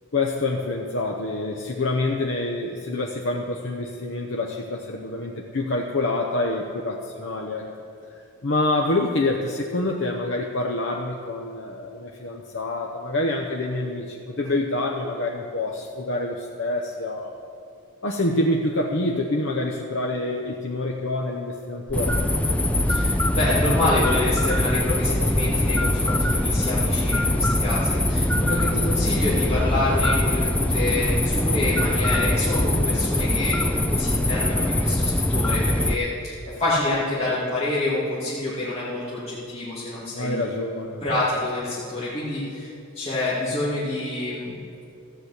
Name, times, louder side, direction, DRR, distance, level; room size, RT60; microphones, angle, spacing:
voice 1, 0.1-7.6 8.4-17.3 18.0-22.2 40.1-41.0, left 2 dB, 55° left, 0 dB, 0.8 m, -26 dB
sound 1, 21.9-36.0, left 1 dB, 5° left, 0.4 m, -22 dB
voice 2, 22.9-40.5 41.0-44.5, left 2 dB, 25° left, -9 dB, 2.4 m, -27 dB
14.0 x 7.5 x 8.1 m, 2.5 s
head